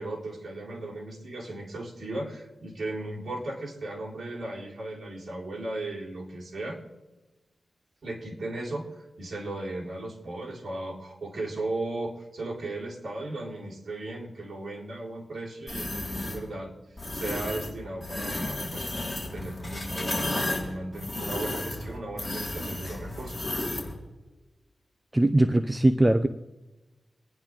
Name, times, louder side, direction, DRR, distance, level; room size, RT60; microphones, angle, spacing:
voice 1, 0.0-6.8 8.0-8.9 9.2-16.7 17.1-18.9 19.3-23.5, right 2 dB, 60° right, -3 dB, 4.2 m, -36 dB
sound 1, 15.7-16.4 17.0-17.7 18.0-23.9, left 1 dB, 10° left, 4.8 m, -33 dB
voice 2, 25.1-26.3, right 1 dB, 15° right, 8 dB, 0.7 m, -21 dB
27.0 x 10.5 x 3.8 m, 1.1 s
wide cardioid pair, 80°, 0 cm